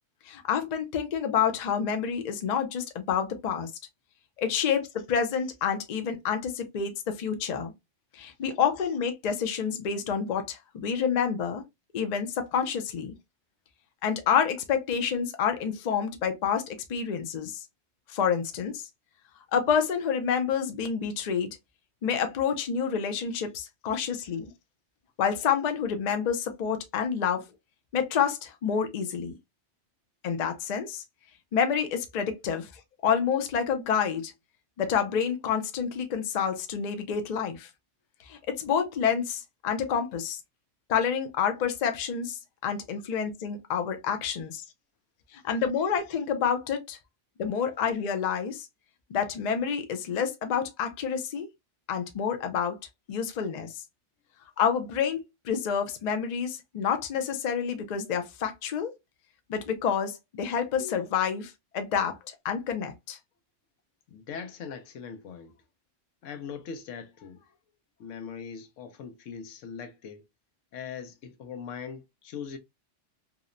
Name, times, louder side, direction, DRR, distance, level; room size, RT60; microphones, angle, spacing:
voice 1, 0.2-3.7 4.4-7.7 8.1-11.6 11.9-13.1 14.0-17.6 18.1-18.9 19.5-21.6 22.0-24.5 25.2-27.4 27.9-29.3 30.2-31.0 31.5-32.7 33.0-34.3 34.8-37.7 38.3-40.4 40.9-44.6 45.4-47.0 47.4-48.7 49.1-51.5 51.9-52.8 53.1-53.8 54.6-58.9 59.5-63.2, left 7 dB, 55° left, 0.5 m, -28 dB
voice 2, 64.1-65.6 66.2-67.6 68.0-70.2 70.7-72.6, left 6 dB, 90° left, 1.0 m, -41 dB
2.8 x 2.0 x 2.4 m
omnidirectional pair, 1.2 m